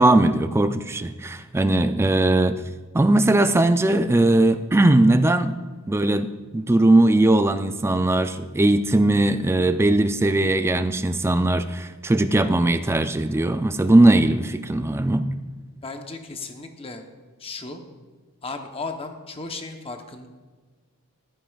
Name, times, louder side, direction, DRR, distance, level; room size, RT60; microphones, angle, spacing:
voice 1, 0.0-2.6 2.9-5.6 5.9-15.3, right 2 dB, 10° right, 10 dB, 0.4 m, -19 dB
voice 2, 15.8-17.0 17.4-17.8 18.4-20.3, left 3 dB, 25° left, 5 dB, 0.9 m, -35 dB
14.5 x 12.0 x 2.4 m, 1.4 s
head